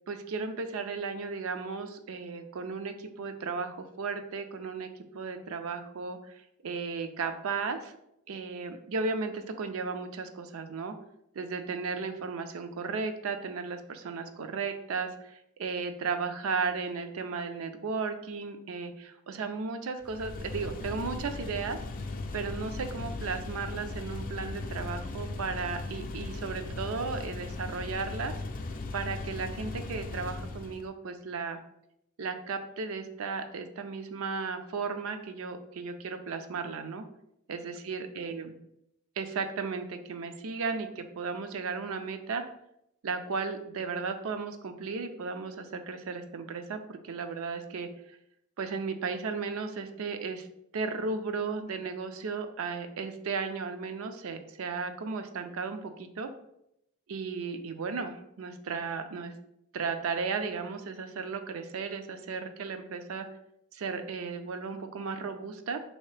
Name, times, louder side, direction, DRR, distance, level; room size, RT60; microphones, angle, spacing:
voice 1, 0.1-7.9 8.3-10.9 11.3-21.8 22.3-28.3 28.9-31.6 32.2-37.1 37.5-38.5 39.2-42.4 43.0-47.9 48.6-50.5 50.7-56.3 57.1-59.3 59.7-63.3 63.7-65.8, right 4 dB, 80° right, 8 dB, 0.4 m, -35 dB
sound 1, 20.0-30.9, left 3 dB, 40° left, 0.3 m, -38 dB
3.5 x 2.8 x 3.2 m, 0.78 s
head